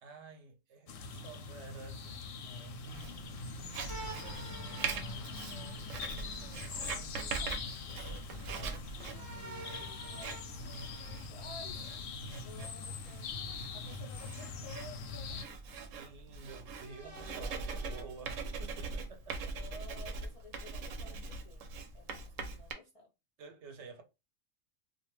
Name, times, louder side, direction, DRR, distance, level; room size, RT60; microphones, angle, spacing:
voice 1, 0.0-8.2 8.6-10.4 15.7-19.6 23.4-24.0, right 4 dB, 70° right, 0.9 m, -52 dB
sound 1, 0.9-15.4, left 4 dB, 90° left, 1.0 m, -43 dB
Writing, 2.9-22.7, right 4 dB, 85° right, 1.0 m, -43 dB
sound 2, 3.9-6.5 9.0-12.0 13.3-14.2 15.0-15.1 16.7-18.7, right 3 dB, 35° right, 0.5 m, -51 dB
voice 2, 7.9-13.3 13.7-15.5 16.9-18.6 19.4-23.1, left 2 dB, 55° left, 0.3 m, -54 dB
2.4 x 2.2 x 3.0 m
omnidirectional pair, 1.3 m